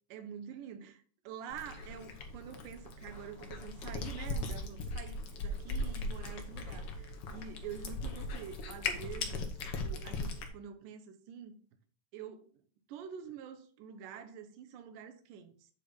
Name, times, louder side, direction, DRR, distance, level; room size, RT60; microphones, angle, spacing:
voice 1, 0.1-11.6 12.1-12.5 12.9-15.7, right 8 dB, 80° right, 2.5 m, -47 dB
Cat, 1.5-10.5, left 2 dB, 60° left, 1.6 m, -39 dB
8.5 x 4.2 x 5.1 m
omnidirectional pair, 3.8 m